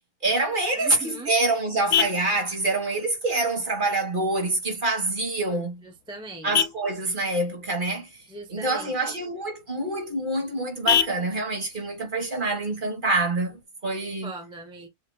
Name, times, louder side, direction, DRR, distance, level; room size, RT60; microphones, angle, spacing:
voice 1, 0.2-5.8 6.4-8.1 8.5-14.3, right 2 dB, 35° right, 1.8 m, -26 dB
Vehicle horn car horn honking, 0.6-13.6, left 9 dB, 80° left, 1.0 m, -33 dB
voice 2, 0.8-1.3 5.8-6.6 8.3-8.9 14.2-14.9, right 2 dB, 5° right, 0.8 m, -40 dB
7.2 x 2.8 x 2.3 m
omnidirectional pair, 1.5 m